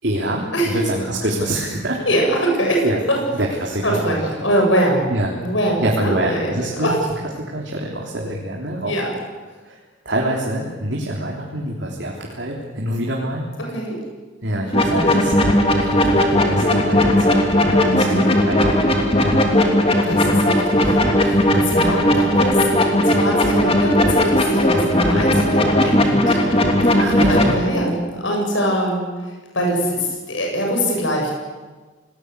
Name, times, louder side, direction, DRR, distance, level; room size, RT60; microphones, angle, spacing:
voice 1, 0.0-2.0 2.6-3.0 3.4-4.3 5.1-5.3 5.8-6.9 7.5-9.0 9.6-9.8 10.0-13.4 14.4-15.3 15.8-17.5 17.8-18.8 27.0-27.4, right 1 dB, 60° right, -2 dB, 3.5 m, -25 dB
voice 2, 2.1-3.2 3.8-5.1 5.4-7.0 8.9-9.1 13.7-14.0 17.8-18.6 20.0-20.9 21.2-22.6 23.1-27.0 27.3-29.1 29.5-31.3, equal, 70° left, 0 dB, 7.4 m, -22 dB
sound 1, 14.7-27.5, left 1 dB, 30° left, 3.0 m, -17 dB
29.0 x 19.5 x 8.3 m, 1.3 s
head